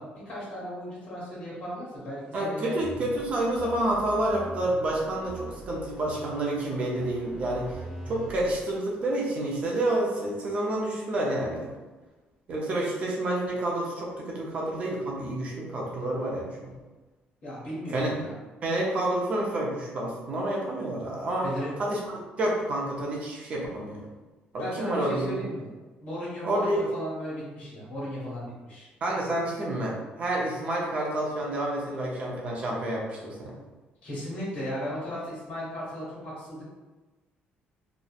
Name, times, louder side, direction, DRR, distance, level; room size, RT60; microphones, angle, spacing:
voice 1, 0.0-2.8 17.4-18.4 21.4-21.7 24.6-25.7 26.0-28.9 34.0-36.6, equal, 45° left, -7 dB, 1.4 m, -36 dB
voice 2, 2.3-7.8 8.1-11.7 12.5-16.7 17.9-18.2 18.6-21.5 21.8-22.0 22.4-24.0 24.5-25.5 26.4-26.8 29.0-33.6, right 1 dB, 35° right, -3 dB, 0.5 m, -29 dB
sound 1, 2.8-8.6, right 1 dB, 20° right, 0.9 m, -43 dB
2.7 x 2.0 x 2.4 m, 1.2 s
cardioid pair, 165°, 4 cm